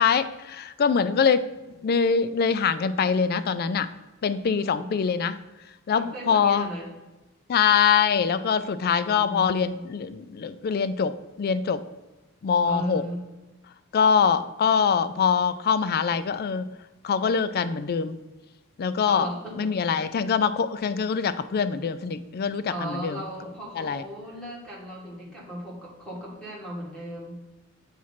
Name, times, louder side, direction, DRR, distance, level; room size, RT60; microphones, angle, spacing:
voice 1, 0.0-1.5 1.8-3.9 4.2-5.4 5.9-6.7 7.5-11.8 12.4-13.0 13.9-16.7 17.0-18.2 18.8-19.3 19.6-23.2 23.8-24.0, left 6 dB, 45° left, 13 dB, 0.4 m, -23 dB
voice 2, 4.4-4.9 5.9-6.9 8.9-9.6 12.6-13.2 19.1-19.8 22.7-27.4, equal, 5° left, -5 dB, 2.0 m, -36 dB
7.2 x 3.1 x 5.6 m, 1.1 s
head